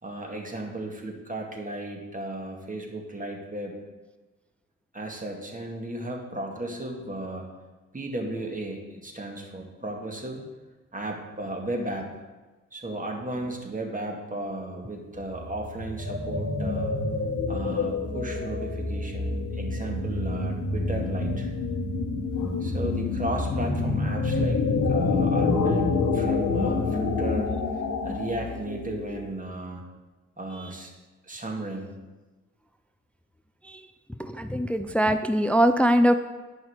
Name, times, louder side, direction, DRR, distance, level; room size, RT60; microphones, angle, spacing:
voice 1, 0.0-3.7 4.9-7.5 7.9-10.4 10.9-12.1 12.7-16.9 17.5-21.5 22.6-25.9 26.1-27.6 28.0-29.8 30.4-30.9 31.3-31.9, right 1 dB, 20° right, 1 dB, 2.0 m, -35 dB
sound 1, 15.1-29.3, left 3 dB, 50° left, 1.4 m, -27 dB
voice 2, 34.2-36.1, equal, 5° left, 9 dB, 0.5 m, -22 dB
9.9 x 5.5 x 4.7 m, 1.2 s
hypercardioid pair, 40°, 36 cm